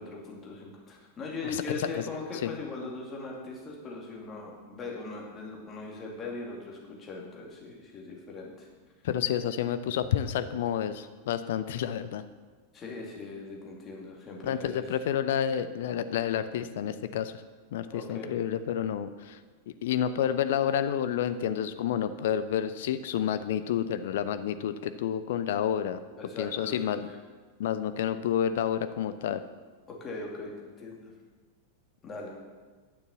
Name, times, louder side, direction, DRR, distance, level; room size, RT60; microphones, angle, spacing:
voice 1, 0.0-8.7 12.7-14.8 17.9-18.3 26.2-27.0 29.9-31.1 32.0-32.3, left 3 dB, 25° left, -1 dB, 2.5 m, -40 dB
voice 2, 1.4-2.1 2.4-2.5 9.0-12.2 14.4-17.4 17.7-19.4 19.7-26.0 26.4-27.1 27.6-29.4, left 9 dB, 55° left, 12 dB, 0.5 m, -29 dB
9.5 x 6.7 x 7.2 m, 1.4 s
figure-of-eight pair, 90°, 0 cm